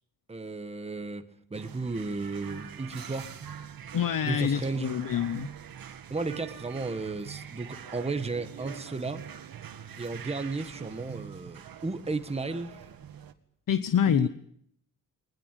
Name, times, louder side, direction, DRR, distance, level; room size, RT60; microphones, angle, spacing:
voice 1, 0.3-3.3 4.2-5.0 6.1-9.2 10.0-12.8 14.0-14.3, right 3 dB, 15° right, 9 dB, 1.5 m, -34 dB
sound 1, 1.5-13.3, right 8 dB, 70° right, 2.1 m, -44 dB
voice 2, 3.9-5.5 13.7-14.3, left 9 dB, 60° left, 12 dB, 1.1 m, -26 dB
22.0 x 20.0 x 9.2 m, 0.67 s
wide cardioid pair, 150°, 37 cm